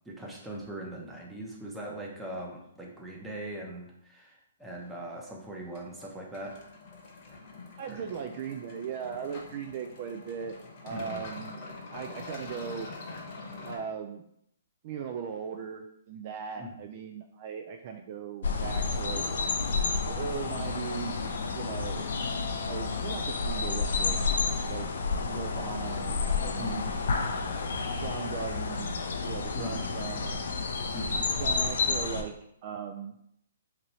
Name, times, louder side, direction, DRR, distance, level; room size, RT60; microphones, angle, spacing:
voice 1, 0.1-6.7 7.9-8.0 10.9-11.2 16.6-16.7 26.6-26.9 29.5-29.9 30.9-31.3, right 1 dB, 5° right, -2 dB, 0.7 m, -40 dB
sound 1, 4.6-13.8, left 3 dB, 45° left, 1.0 m, -45 dB
voice 2, 7.8-10.6 10.8-11.6 11.9-12.9 13.6-14.3 14.8-19.3 20.1-22.1 22.7-24.9 25.2-26.7 27.5-30.5 31.4-32.3 32.6-33.2, right 7 dB, 45° right, 5 dB, 0.3 m, -38 dB
sound 2, 18.4-32.2, left 4 dB, 70° left, 0.5 m, -30 dB
3.0 x 2.7 x 4.1 m, 0.72 s
hypercardioid pair, 140°, 0 cm